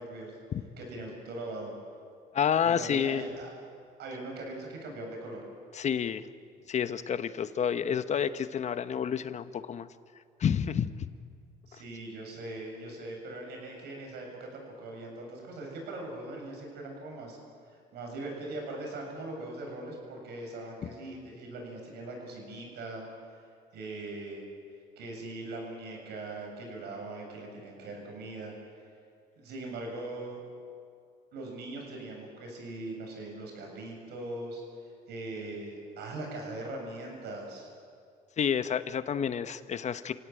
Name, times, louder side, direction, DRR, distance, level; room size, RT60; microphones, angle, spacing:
voice 1, 0.0-0.3 0.8-1.7 2.7-3.5 4.0-5.5 11.7-17.4 17.9-23.1 23.7-24.5 25.0-28.5 29.4-30.5 31.3-34.6 35.1-37.7, right 2 dB, 75° right, 1 dB, 7.5 m, -40 dB
voice 2, 2.3-3.2 5.7-6.2 6.7-9.9 10.4-10.9 20.8-20.9 38.4-40.1, left 8 dB, 45° left, 12 dB, 1.1 m, -29 dB
27.5 x 17.0 x 9.2 m, 2.2 s
cardioid pair, 110°, 17 cm